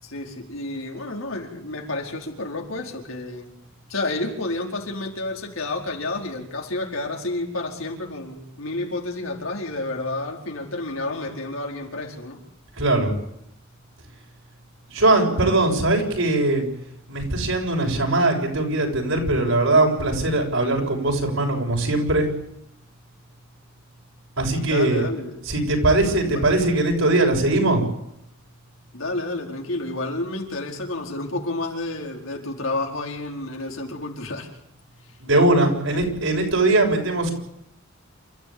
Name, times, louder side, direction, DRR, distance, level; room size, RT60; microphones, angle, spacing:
voice 1, 0.0-3.6 3.9-12.4 24.6-25.4 26.2-26.4 28.9-34.5, left 2 dB, 80° left, 1 dB, 4.8 m, -30 dB
voice 2, 12.8-13.1 14.9-16.7 17.1-22.3 24.4-25.1 25.4-27.8 35.2-37.3, right 2 dB, 75° right, 1 dB, 6.9 m, -20 dB
28.5 x 14.0 x 8.9 m, 0.78 s
head